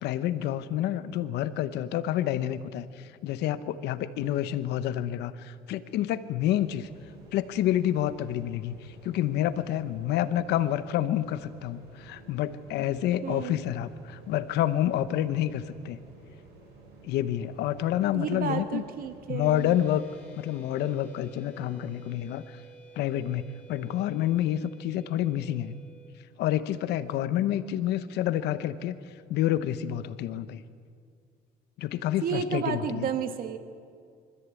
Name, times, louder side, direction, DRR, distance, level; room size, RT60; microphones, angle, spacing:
voice 1, 0.0-6.9 7.3-16.0 17.0-18.8 19.3-20.0 20.4-22.6 23.0-25.7 26.4-29.0 29.3-30.6 31.8-33.1, left 12 dB, 80° left, 14 dB, 1.0 m, -28 dB
sound 1, 6.6-19.8, right 3 dB, 80° right, 5.6 m, -53 dB
voice 2, 13.2-13.6 18.1-19.7 32.2-33.6, right 7 dB, 60° right, 8 dB, 1.8 m, -31 dB
sound 2, 19.4-26.1, right 5 dB, 10° left, 7.0 m, -52 dB
24.5 x 14.5 x 8.4 m, 2.2 s
cardioid pair, 110°, 17 cm